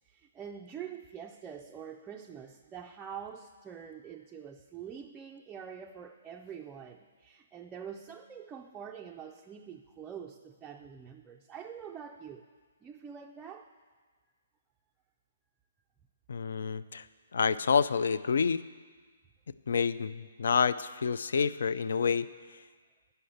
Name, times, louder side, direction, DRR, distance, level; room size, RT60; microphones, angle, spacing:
voice 1, 0.0-12.4 12.8-13.7, right 8 dB, 15° right, 2 dB, 0.3 m, -45 dB
voice 2, 16.3-17.0 17.3-18.6 19.7-22.3, left 6 dB, 75° left, 16 dB, 0.3 m, -28 dB
8.5 x 5.5 x 7.8 m, 1.5 s
hypercardioid pair, 160°, 0 cm